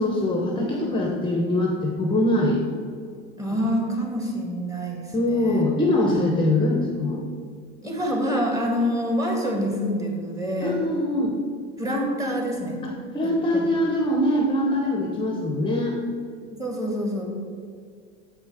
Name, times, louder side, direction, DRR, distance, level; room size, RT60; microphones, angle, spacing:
voice 1, 0.0-2.6 5.1-7.2 10.6-11.3 12.8-16.0, left 1 dB, 15° left, 0 dB, 0.9 m, -23 dB
voice 2, 3.4-5.7 6.0-6.4 7.8-10.8 11.8-12.8 13.2-13.7 16.5-17.2, equal, 10° right, 0 dB, 1.8 m, -27 dB
7.4 x 5.3 x 4.9 m, 2.2 s
supercardioid pair, 110°, 31 cm